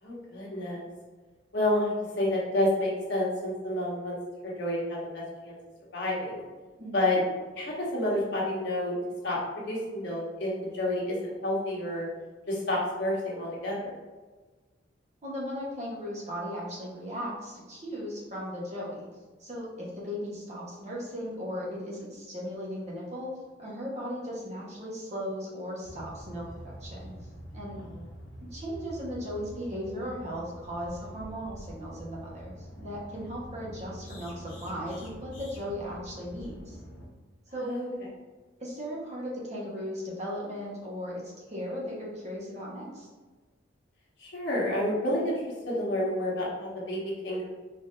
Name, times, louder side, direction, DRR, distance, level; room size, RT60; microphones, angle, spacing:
voice 1, 0.0-0.8 1.5-4.1 4.4-5.5 5.9-6.4 6.9-7.2 7.6-9.0 9.2-9.4 9.7-11.2 11.4-12.0 12.5-14.0 27.8-27.9 37.6-37.9 44.2-47.5, left 1 dB, 65° left, -5 dB, 1.4 m, -29 dB
voice 2, 6.8-7.2 15.2-19.1 19.4-23.3 23.6-27.1 27.5-27.8 28.5-36.8 37.5-37.8 38.6-43.1, equal, 35° right, -4 dB, 1.2 m, -37 dB
sound 1, 25.8-37.1, equal, 85° left, 1.1 m, -45 dB
4.4 x 2.8 x 3.8 m, 1.3 s
head